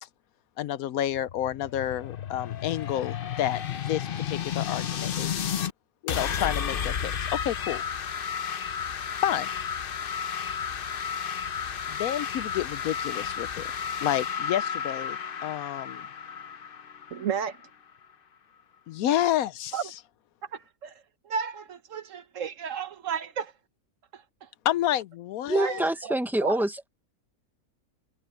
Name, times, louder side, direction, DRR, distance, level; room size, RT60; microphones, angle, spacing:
voice 1, 0.6-5.5 6.0-7.8 9.2-9.5 11.9-13.7 14.0-16.1 18.9-19.8 24.6-25.9, left 12 dB, 75° left, 1.0 m, -30 dB
sound 1, 1.1-5.7 6.1-17.6, left 8 dB, 50° left, 0.8 m, -32 dB
voice 2, 17.1-17.6 19.7-19.9 20.5-20.9 21.2-23.5 24.1-24.5 25.5-26.2 26.4-26.6, right 7 dB, 60° right, 1.3 m, -33 dB
voice 3, 25.5-26.9, right 1 dB, ahead, 0.7 m, -26 dB
omnidirectional pair, 1.6 m